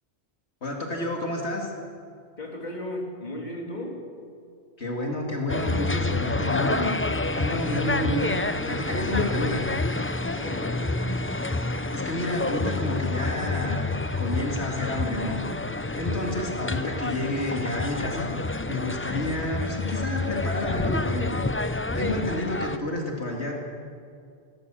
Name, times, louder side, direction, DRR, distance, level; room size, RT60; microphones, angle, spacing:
voice 1, 0.6-1.7 4.8-6.9 7.3-8.4 8.7-9.7 11.9-13.8 14.2-15.4 16.0-18.3 18.7-21.4 21.9-23.6, left 1 dB, 80° left, 0 dB, 2.8 m, -30 dB
voice 2, 2.4-4.0 10.3-11.1, left 1 dB, 40° left, 0 dB, 3.2 m, -35 dB
sound 1, 5.5-22.8, left 2 dB, 15° left, 0.4 m, -28 dB
19.5 x 19.0 x 7.7 m, 2.3 s
omnidirectional pair, 1.1 m